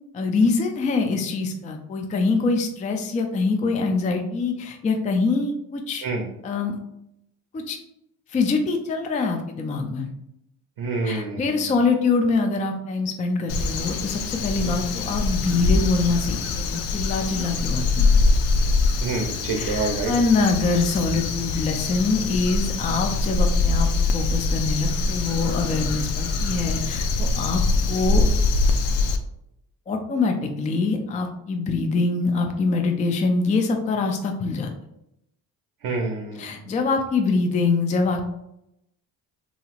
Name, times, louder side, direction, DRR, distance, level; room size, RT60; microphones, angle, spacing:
voice 1, 0.1-6.0 6.4-6.8 7.5-7.8 8.3-10.1 11.0-18.1 19.6-27.6 27.9-28.2 29.9-34.7 36.4-38.2, left 4 dB, 20° left, 4 dB, 0.3 m, -24 dB
voice 2, 10.8-11.7 19.0-20.1 35.8-36.6, right 3 dB, 65° right, 1 dB, 0.7 m, -27 dB
Crow, 13.5-29.2, left 3 dB, 75° left, 0.5 m, -23 dB
2.9 x 2.8 x 2.4 m, 0.82 s
supercardioid pair, 65°, 41 cm